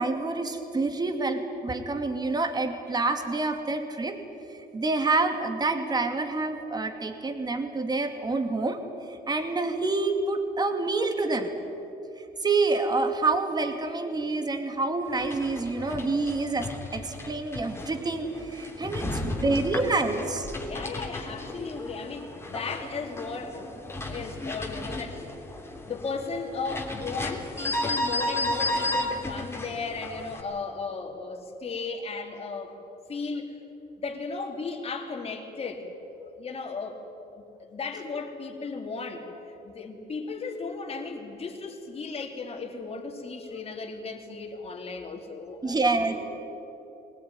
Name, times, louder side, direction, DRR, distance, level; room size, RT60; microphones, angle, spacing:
voice 1, 0.0-4.2 4.7-8.8 9.3-11.5 12.4-20.5 45.6-46.2, right 3 dB, 25° right, 6 dB, 2.6 m, -27 dB
sound 1, 15.1-30.4, left 1 dB, 15° left, 3.2 m, -34 dB
voice 2, 19.0-20.3 20.6-25.2 25.9-32.8 33.1-33.6 34.0-37.0 37.3-39.3 39.6-46.2, left 4 dB, 35° left, 2 dB, 3.2 m, -36 dB
22.0 x 19.0 x 9.7 m, 2.9 s
cardioid pair, 110°, 17 cm